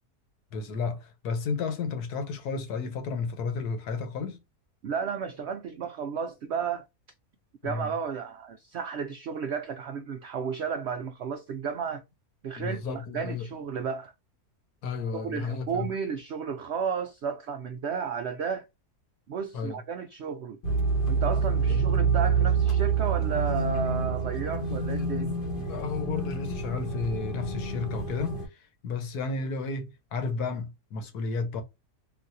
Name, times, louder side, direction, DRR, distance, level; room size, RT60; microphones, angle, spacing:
voice 1, 0.5-4.4 7.6-7.9 12.6-13.5 14.8-15.9 19.5-19.8 21.7-21.8 25.6-31.6, left 4 dB, 75° left, 1.4 m, -32 dB
voice 2, 4.8-6.9 7.6-12.0 12.4-14.1 15.1-18.7 19.3-20.6 21.1-25.3, right 6 dB, 75° right, 0.6 m, -33 dB
sound 1, 20.6-28.5, right 5 dB, 45° left, 0.9 m, -27 dB
3.9 x 2.4 x 2.5 m
omnidirectional pair, 1.7 m